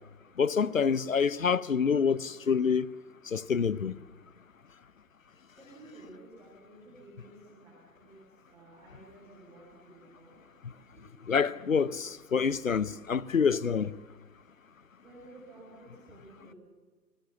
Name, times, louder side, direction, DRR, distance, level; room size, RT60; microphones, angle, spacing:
voice 1, 0.4-2.9 3.3-4.0 11.3-14.0, left 6 dB, 50° left, 0.8 m, -27 dB
voice 2, 5.6-8.2 8.4-10.4 10.9-11.1 15.0-16.5, right 2 dB, 5° right, 4.0 m, -53 dB
30.0 x 19.0 x 7.1 m
figure-of-eight pair, 160°, 50 cm